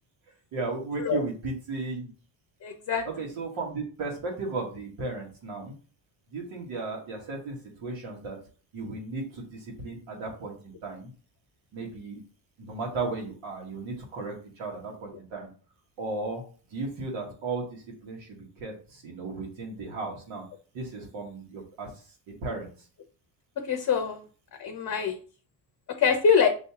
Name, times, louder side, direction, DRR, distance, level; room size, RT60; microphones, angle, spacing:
voice 1, 0.5-2.1 3.0-5.7 6.3-8.4 8.7-11.1 11.7-12.2 12.6-15.5 16.0-16.4 16.7-20.5 20.7-22.0 22.4-22.7, right 3 dB, 80° right, 0 dB, 1.7 m, -35 dB
voice 2, 2.6-3.0 23.6-24.2 24.6-25.2 26.0-26.5, left 6 dB, 40° left, 6 dB, 0.7 m, -24 dB
5.5 x 2.7 x 2.9 m, 0.39 s
cardioid pair, 85°, 47 cm